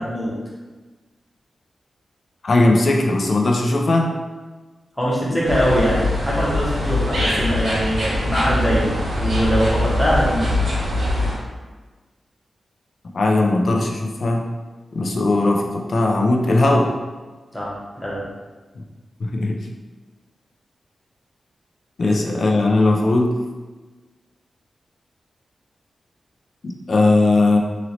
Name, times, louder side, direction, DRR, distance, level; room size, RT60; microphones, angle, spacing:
voice 1, 2.4-4.1 5.3-5.4 13.1-14.5 14.9-16.9 19.2-19.6 22.0-23.3 26.6-27.6, left 2 dB, 50° left, 0 dB, 0.4 m, -18 dB
voice 2, 5.0-10.5 17.5-18.2 22.0-22.4, equal, 5° left, -6 dB, 0.8 m, -22 dB
sound 1, 5.4-11.3, left 1 dB, 85° right, 1.0 m, -22 dB
3.0 x 2.9 x 2.7 m, 1.3 s
wide cardioid pair, 160°, 0 cm